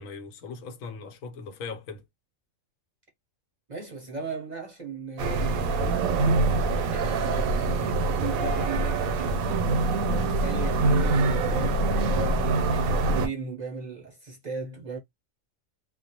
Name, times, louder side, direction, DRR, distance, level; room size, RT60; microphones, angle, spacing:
voice 1, 0.0-2.0, left 4 dB, 80° left, 1.0 m, -39 dB
voice 2, 3.7-6.5 6.9-9.5 10.1-15.0, right 4 dB, 45° right, 0.6 m, -36 dB
sound 1, 5.2-13.3, right 2 dB, 90° right, 1.0 m, -24 dB
2.4 x 2.1 x 2.7 m
omnidirectional pair, 1.4 m